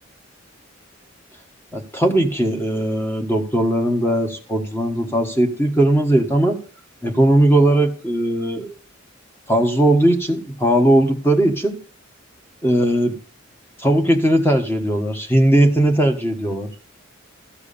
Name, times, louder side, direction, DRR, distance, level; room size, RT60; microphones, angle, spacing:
voice 1, 1.7-6.6 7.0-8.7 9.5-11.8 12.6-13.1 13.8-16.7, right 1 dB, 10° left, 4 dB, 1.4 m, -18 dB
14.0 x 4.8 x 6.9 m, 0.38 s
head